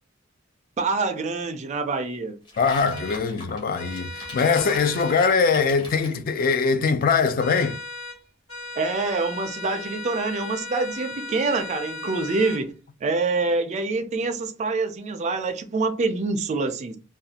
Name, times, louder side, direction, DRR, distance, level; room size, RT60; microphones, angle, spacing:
voice 1, 0.8-2.4 8.8-12.7 13.0-17.0, right 3 dB, 35° right, 0.3 m, -26 dB
sound 1, 2.5-6.2, left 1 dB, 20° left, 0.7 m, -42 dB
voice 2, 2.6-7.8, left 5 dB, 45° left, 0.3 m, -22 dB
sound 2, 2.9-3.2 3.8-5.2 7.4-8.2 8.5-12.6, left 2 dB, 80° left, 1.5 m, -37 dB
2.4 x 2.2 x 2.7 m
head